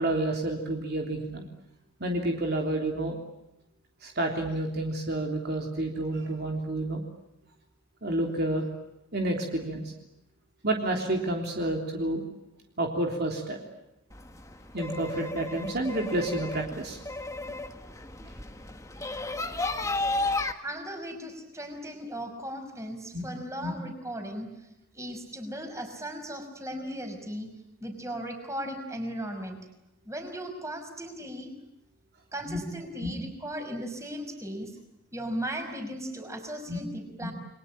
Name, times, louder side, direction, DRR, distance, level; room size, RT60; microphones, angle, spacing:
voice 1, 0.0-1.5 2.0-3.2 4.0-7.0 8.0-8.7 9.1-9.8 10.6-12.3 12.8-13.6 14.7-17.0 17.5-17.6 20.2-20.5 23.1-23.3 23.6-23.7 32.5-32.6 33.0-33.1 36.7-36.8 37.2-37.3, right 1 dB, 50° right, 2 dB, 3.4 m, -29 dB
sound 1, 14.1-20.5, left 2 dB, 15° left, 1.7 m, -33 dB
voice 2, 20.6-24.7 24.9-27.5 27.8-29.6 30.1-31.5 32.3-34.7 35.1-37.3, equal, 15° right, 5 dB, 5.5 m, -37 dB
29.5 x 22.5 x 8.7 m, 0.90 s
head